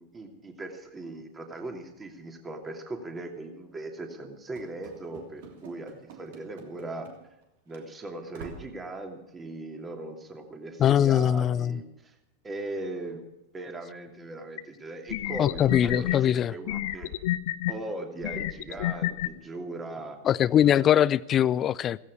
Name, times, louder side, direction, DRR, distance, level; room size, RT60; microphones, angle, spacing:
voice 1, 0.0-7.1 7.7-12.1 12.4-13.2 13.5-17.1 17.7-20.2 20.6-21.0, right 2 dB, 15° right, 2.7 m, -39 dB
Run / Slam, 4.5-7.4 7.7-7.9 8.3-8.8, right 5 dB, 50° right, 2.8 m, -48 dB
voice 2, 10.8-11.8 15.4-16.5 20.2-22.0, left 10 dB, 30° left, 0.4 m, -22 dB
sound 1, 14.6-14.7 15.1-16.2 16.7-17.7 18.2-19.3, left 14 dB, 55° left, 0.8 m, -29 dB
16.0 x 16.0 x 4.8 m
figure-of-eight pair, 90°, 0 cm